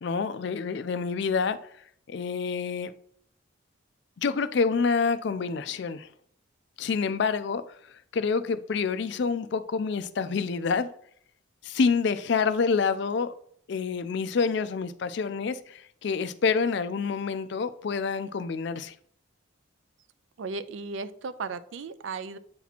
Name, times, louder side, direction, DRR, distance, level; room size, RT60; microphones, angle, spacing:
voice 1, 0.0-1.6 2.1-2.9 4.2-6.1 6.8-7.6 8.1-10.9 11.6-13.3 13.7-18.9, left 5 dB, 55° left, 0.4 m, -27 dB
voice 2, 20.4-22.4, right 4 dB, 70° right, 0.4 m, -35 dB
8.2 x 2.9 x 4.1 m
head